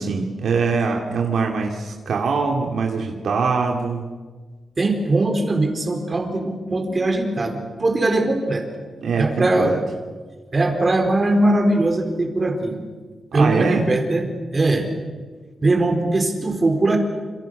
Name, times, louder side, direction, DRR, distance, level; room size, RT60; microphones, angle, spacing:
voice 1, 0.0-4.0 9.0-9.8 13.3-13.8, right 5 dB, 80° right, 1 dB, 2.7 m, -23 dB
voice 2, 4.8-8.9 9.2-9.8 10.5-12.8 13.3-14.3 14.5-14.9 15.6-17.0, right 2 dB, 25° right, 4 dB, 4.4 m, -20 dB
28.5 x 27.5 x 6.7 m, 1.4 s
wide cardioid pair, 150°, 0 cm